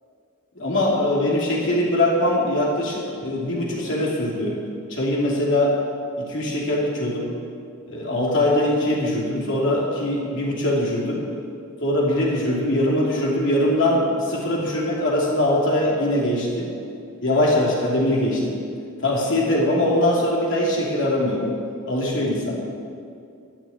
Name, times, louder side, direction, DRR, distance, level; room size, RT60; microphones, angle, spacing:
voice 1, 0.6-4.6 4.9-5.8 6.2-7.3 7.9-11.2 11.8-16.7 17.2-18.5 19.0-21.5 21.9-22.6, left 1 dB, 60° left, -3 dB, 3.0 m, -22 dB
12.5 x 6.6 x 8.9 m, 2.4 s
head